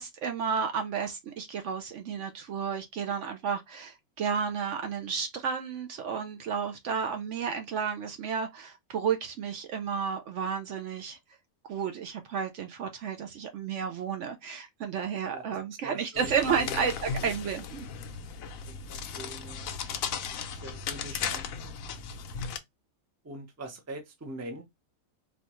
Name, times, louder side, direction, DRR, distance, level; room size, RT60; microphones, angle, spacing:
voice 1, 0.0-11.2 11.6-17.8, right 6 dB, 65° right, 0.8 m, -32 dB
voice 2, 15.8-16.8 18.7-21.5 23.2-24.6, right 1 dB, 15° right, 0.6 m, -43 dB
sound 1, 16.2-22.6, left 6 dB, 75° left, 1.0 m, -36 dB
4.2 x 2.3 x 3.0 m
omnidirectional pair, 1.5 m